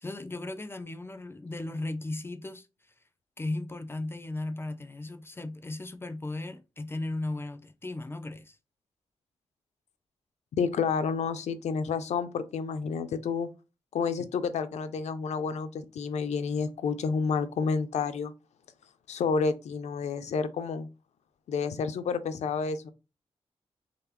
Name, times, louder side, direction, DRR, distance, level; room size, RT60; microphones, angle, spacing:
voice 1, 0.0-2.7 3.4-8.6, left 2 dB, 20° left, 0.4 m, -36 dB
voice 2, 10.6-13.5 13.9-18.3 19.1-20.9 21.5-22.9, left 5 dB, 90° left, 0.4 m, -30 dB
3.9 x 3.1 x 2.9 m
wide cardioid pair, 110°, 11 cm